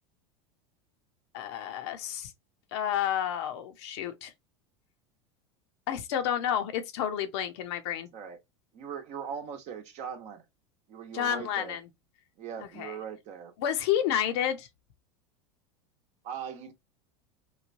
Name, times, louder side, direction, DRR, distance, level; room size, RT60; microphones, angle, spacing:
voice 1, 1.3-2.3 2.7-4.3 5.9-8.1 11.1-11.8 12.8-12.9 13.6-14.7, left 10 dB, 70° left, 0.6 m, -30 dB
voice 2, 8.7-10.5 10.9-11.8 12.4-13.5 16.2-16.7, right 7 dB, 50° right, 0.8 m, -40 dB
3.1 x 2.2 x 2.5 m
hypercardioid pair, 95°, 15 cm